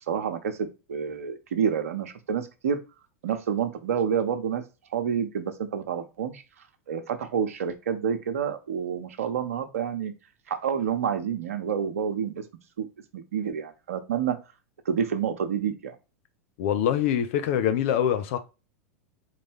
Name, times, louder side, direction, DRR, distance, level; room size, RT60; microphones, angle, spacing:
voice 1, 0.1-0.6 0.9-2.8 3.2-4.6 4.9-6.4 6.9-10.1 10.5-12.4 12.8-12.9 13.1-14.4 14.9-16.0, right 7 dB, 75° right, 0.8 m, -28 dB
voice 2, 16.6-18.4, left 9 dB, 65° left, 0.8 m, -24 dB
4.2 x 3.2 x 3.4 m
hypercardioid pair, 100°, 8 cm